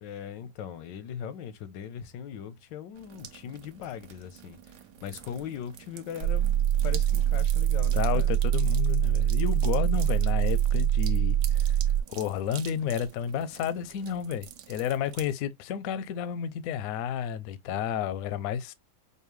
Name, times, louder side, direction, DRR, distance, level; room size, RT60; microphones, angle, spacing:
voice 1, 0.0-6.5 6.8-8.3, left 8 dB, 85° left, 1.3 m, -40 dB
sound 1, 2.9-15.3, right 10 dB, 85° right, 1.3 m, -47 dB
sound 2, 6.2-12.0, right 11 dB, 70° right, 0.9 m, -24 dB
voice 2, 7.9-11.8 12.1-18.7, left 8 dB, 70° left, 0.8 m, -31 dB
5.4 x 2.2 x 3.1 m
omnidirectional pair, 1.9 m